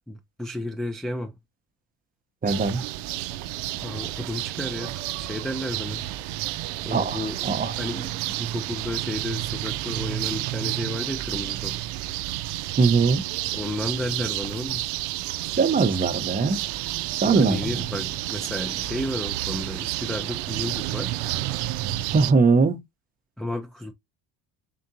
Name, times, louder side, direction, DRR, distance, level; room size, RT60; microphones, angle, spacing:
voice 1, 0.1-1.3 3.8-6.0 6.8-7.4 7.8-11.8 13.5-14.8 17.2-21.1 23.4-23.9, left 1 dB, ahead, 0.4 m, -32 dB
voice 2, 2.4-2.8 6.9-7.7 12.8-13.2 15.6-16.6 17.2-17.6 22.1-22.8, right 4 dB, 20° right, 0.7 m, -21 dB
sound 1, 2.5-22.3, right 15 dB, 75° right, 0.5 m, -30 dB
3.8 x 3.5 x 2.6 m
supercardioid pair, 85°, 40 cm